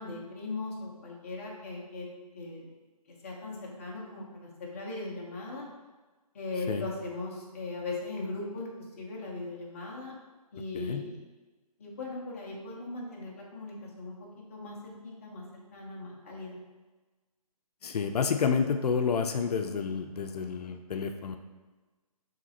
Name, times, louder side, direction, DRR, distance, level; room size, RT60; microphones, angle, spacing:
voice 1, 0.0-2.1 2.3-2.6 3.2-5.7 6.3-10.1 10.5-11.2 11.8-16.6, left 2 dB, 20° left, -3 dB, 0.6 m, -39 dB
voice 2, 17.8-21.4, left 6 dB, 75° left, 6 dB, 0.4 m, -29 dB
4.9 x 3.2 x 2.8 m, 1.2 s
hypercardioid pair, 170°, 20 cm